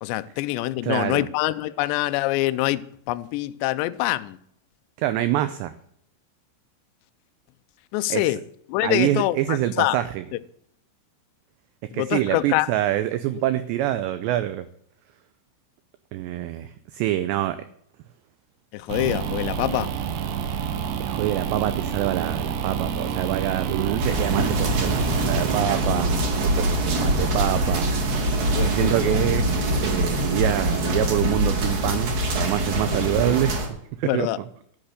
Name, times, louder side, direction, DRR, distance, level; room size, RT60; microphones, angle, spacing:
voice 1, 0.0-4.4 7.9-8.4 8.7-10.0 11.9-12.7 18.7-19.9 28.5-29.2 34.0-34.4, left 17 dB, 90° left, 2.5 m, -25 dB
voice 2, 0.8-1.3 5.0-5.7 8.1-8.2 8.8-10.2 11.9-14.7 16.1-17.6 21.0-26.1 26.4-27.9 28.5-29.5 29.8-33.6 34.0-34.3, right 13 dB, 85° right, 2.4 m, -25 dB
sound 1, 18.9-29.3, right 7 dB, 70° right, 3.0 m, -29 dB
sound 2, 24.0-33.7, right 1 dB, 45° right, 3.2 m, -24 dB
11.5 x 8.9 x 6.6 m
omnidirectional pair, 5.8 m